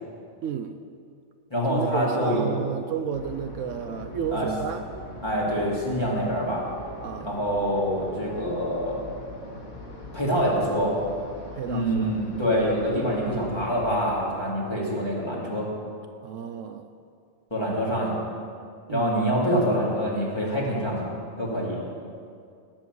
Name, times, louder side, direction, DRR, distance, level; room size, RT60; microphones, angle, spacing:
voice 1, 0.4-0.8 1.7-4.8 7.0-7.3 11.5-12.1 16.2-16.9 18.9-19.1, right 8 dB, 70° right, 8 dB, 0.9 m, -32 dB
voice 2, 1.5-2.5 4.3-4.5 5.2-6.6 7.2-9.0 10.1-11.0 11.6-15.7 17.5-18.2 18.9-21.1 21.4-21.8, equal, 20° left, -6 dB, 2.9 m, -25 dB
sound 1, 3.1-14.0, left 2 dB, 80° left, 2.0 m, -42 dB
18.0 x 7.7 x 6.3 m, 2.3 s
omnidirectional pair, 1.4 m